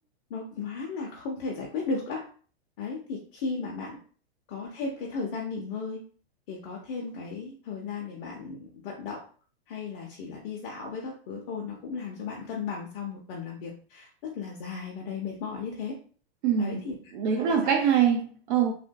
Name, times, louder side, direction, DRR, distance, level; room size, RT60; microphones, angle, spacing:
voice 1, 0.3-2.3 2.8-4.0 4.5-6.0 6.5-9.2 9.7-16.0 16.6-17.7, left 4 dB, 55° left, 0.8 m, -35 dB
voice 2, 16.4-16.8 17.1-18.7, right 8 dB, 50° right, 0.5 m, -24 dB
3.5 x 2.5 x 2.2 m
hypercardioid pair, 120°, 32 cm